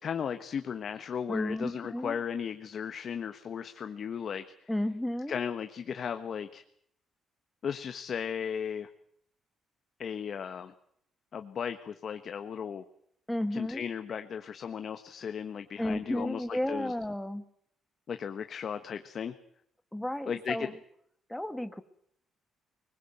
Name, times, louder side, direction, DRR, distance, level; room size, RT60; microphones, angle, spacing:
voice 1, 0.0-4.7 5.3-6.6 7.6-8.9 10.0-10.7 11.3-12.8 13.5-16.9 18.1-19.3 20.3-20.7, left 7 dB, 55° left, 9 dB, 1.3 m, -36 dB
voice 2, 1.3-2.1 4.7-5.4 13.3-13.8 15.8-17.4 19.9-20.7 21.3-21.8, left 1 dB, 5° left, 10 dB, 1.5 m, -33 dB
22.0 x 20.5 x 7.9 m, 0.70 s
cardioid pair, 90°, 0 cm